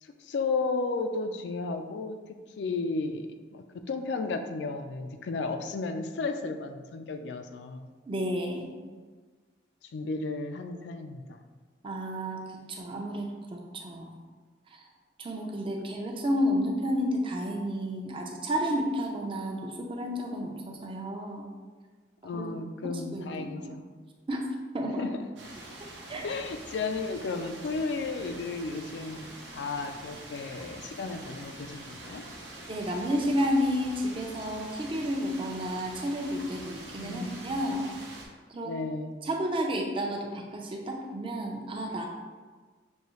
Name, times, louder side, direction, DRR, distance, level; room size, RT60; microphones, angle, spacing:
voice 1, 0.0-7.9 9.9-11.4 22.2-23.9 25.0-25.1 26.2-32.2 37.0-37.4 38.6-39.1, left 3 dB, 75° left, 7 dB, 0.4 m, -34 dB
voice 2, 8.1-8.7 11.8-12.4 12.7-14.2 14.7-14.9 15.2-21.5 22.2-22.4 22.8-23.8 24.3-24.4 24.7-25.0 26.1-26.2 32.7-37.9 38.5-38.7 39.2-42.1, equal, 30° right, 1 dB, 0.5 m, -31 dB
sound 1, 25.4-38.3, right 2 dB, 85° right, 0.9 m, -45 dB
6.4 x 2.7 x 3.0 m, 1.4 s
head